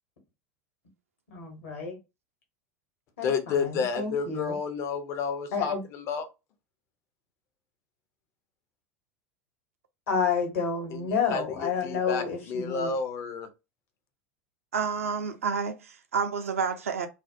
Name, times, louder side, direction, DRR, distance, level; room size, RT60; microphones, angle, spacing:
voice 1, 1.3-2.0 3.2-4.5 5.5-5.8 10.1-12.9, left 5 dB, 65° left, 1.1 m, -30 dB
voice 2, 3.2-6.3 10.9-13.5, left 5 dB, 40° left, 0.5 m, -31 dB
voice 3, 14.7-17.1, right 6 dB, 70° right, 0.4 m, -29 dB
2.4 x 2.0 x 2.4 m
figure-of-eight pair, 80°, 8 cm